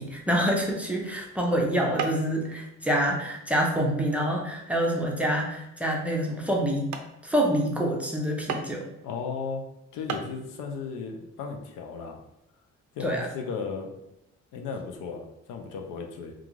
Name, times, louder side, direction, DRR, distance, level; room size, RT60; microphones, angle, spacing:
voice 1, 0.0-6.9 7.2-8.8 13.0-13.3, equal, 5° right, -2 dB, 0.6 m, -26 dB
sound 1, 2.0-2.4 2.8-3.2 3.7-3.8 4.4-4.7 5.3-5.4 5.9-6.0 6.5-6.6 6.9-7.1 8.5-8.9 9.7-9.8 10.1-10.3, right 5 dB, 70° right, 0.4 m, -34 dB
voice 2, 9.0-9.6 9.9-12.2 12.9-13.9 14.5-16.3, left 5 dB, 90° left, 3 dB, 0.5 m, -35 dB
2.4 x 2.4 x 3.0 m, 0.86 s
cardioid pair, 90°, 30 cm